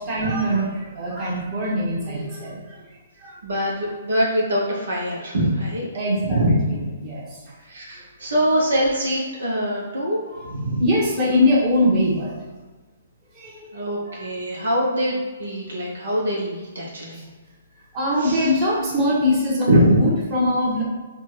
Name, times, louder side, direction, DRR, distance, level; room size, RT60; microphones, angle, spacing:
voice 1, 0.0-2.8 3.2-3.3 5.9-7.5 10.3-10.5 10.8-12.3 13.3-13.7 14.0-14.2 17.1-17.2 17.9-20.8, left 1 dB, 30° right, -6 dB, 1.4 m, -22 dB
voice 2, 3.4-5.9 6.2-6.6 7.6-10.8 13.7-17.2 18.2-18.4 19.7-20.0, equal, 70° right, -4 dB, 1.1 m, -23 dB
4.3 x 2.5 x 4.3 m, 1.3 s
figure-of-eight pair, 125°, 0 cm